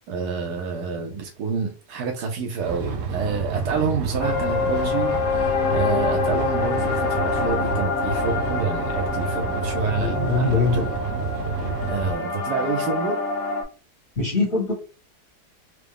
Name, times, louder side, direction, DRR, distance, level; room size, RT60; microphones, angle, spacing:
voice 1, 0.0-10.9 11.9-13.2, right 5 dB, 85° right, 1.2 m, -28 dB
sound 1, 2.6-12.1, right 4 dB, 60° right, 0.9 m, -29 dB
sound 2, 4.2-13.6, left 4 dB, 85° left, 1.4 m, -26 dB
voice 2, 9.9-10.8 14.2-14.7, left 3 dB, 55° left, 2.1 m, -22 dB
4.6 x 2.1 x 3.4 m
omnidirectional pair, 1.7 m